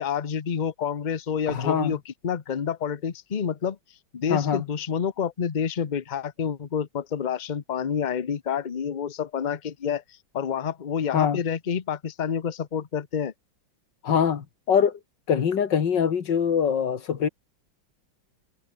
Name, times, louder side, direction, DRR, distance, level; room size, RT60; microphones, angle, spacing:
voice 1, 0.0-3.8 4.1-10.0 10.3-13.3, left 7 dB, 40° left, 0.7 m, -28 dB
voice 2, 1.5-2.0 4.3-4.6 11.1-11.4 14.0-15.0 15.3-17.3, left 7 dB, 65° left, 2.3 m, -23 dB
omnidirectional pair, 2.1 m